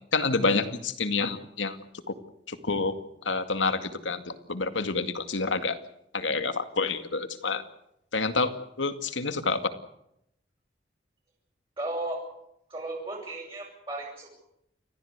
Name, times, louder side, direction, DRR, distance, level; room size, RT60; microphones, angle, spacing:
voice 1, 0.1-1.8 2.1-2.2 2.5-2.9 3.2-5.8 6.1-7.6 8.1-8.5 8.8-9.6, left 3 dB, 85° left, 9 dB, 2.2 m, -28 dB
voice 2, 11.8-12.2 12.7-14.3, right 2 dB, 30° right, -4 dB, 6.7 m, -35 dB
29.5 x 14.5 x 8.2 m, 0.78 s
head